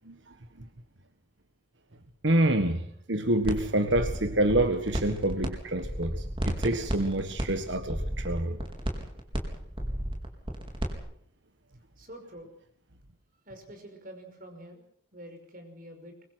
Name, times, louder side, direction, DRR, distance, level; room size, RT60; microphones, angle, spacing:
voice 1, 2.2-8.6, right 1 dB, 65° right, 1.5 m, -27 dB
sound 1, 3.4-3.6 3.9-5.5 5.7-10.9, equal, 25° right, 4.4 m, -32 dB
voice 2, 12.0-12.5 13.5-14.8 15.1-16.2, equal, 45° right, 5.6 m, -46 dB
24.5 x 23.0 x 6.3 m
head